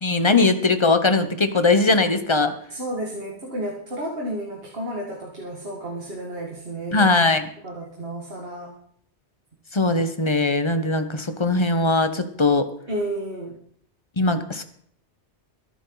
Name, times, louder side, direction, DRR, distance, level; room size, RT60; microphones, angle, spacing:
voice 1, 0.0-2.5 6.9-7.5 9.7-12.7 14.2-14.6, left 3 dB, 25° left, 9 dB, 1.0 m, -20 dB
voice 2, 2.7-7.1 7.6-8.7 12.9-13.6, right 1 dB, 60° right, -1 dB, 2.2 m, -31 dB
22.5 x 8.8 x 4.0 m, 0.65 s
omnidirectional pair, 1.2 m